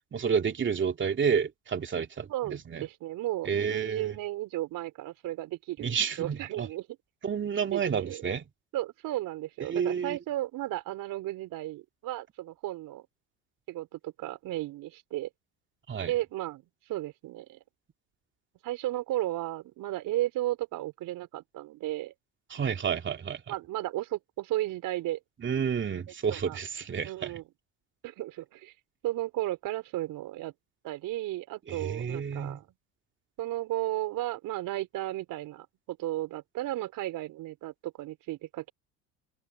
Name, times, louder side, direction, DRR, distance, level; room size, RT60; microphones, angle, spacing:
voice 1, 0.1-2.9 3.4-4.2 5.8-6.7 7.2-8.5 9.6-10.2 15.9-16.1 22.5-23.5 25.4-27.4 31.7-32.6, right 7 dB, 30° right, 2.8 m, -30 dB
voice 2, 2.3-6.9 7.7-8.2 8.7-13.0 13.7-15.3 16.1-16.6 16.9-17.6 18.6-22.1 23.5-25.2 26.3-26.6 27.0-27.4 28.0-28.7 29.0-30.5 30.8-32.6 33.4-38.7, right 15 dB, 55° right, 4.4 m, -34 dB
supercardioid pair, 90°, 38 cm